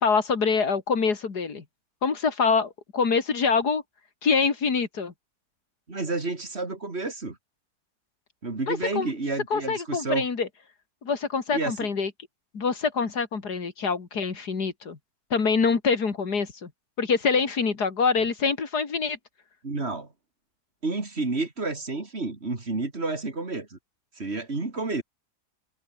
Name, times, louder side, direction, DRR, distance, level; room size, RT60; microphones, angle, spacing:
voice 1, 0.0-1.6 2.0-3.8 4.2-5.1 8.7-9.1 9.5-10.5 11.0-12.1 12.5-15.0 15.3-16.7 17.0-19.2, left 5 dB, 75° left, 3.0 m, -25 dB
voice 2, 5.9-7.4 8.4-10.3 11.5-11.7 19.6-20.1 20.8-23.8 24.2-25.0, right 3 dB, 40° right, 3.2 m, -30 dB
omnidirectional pair, 1.7 m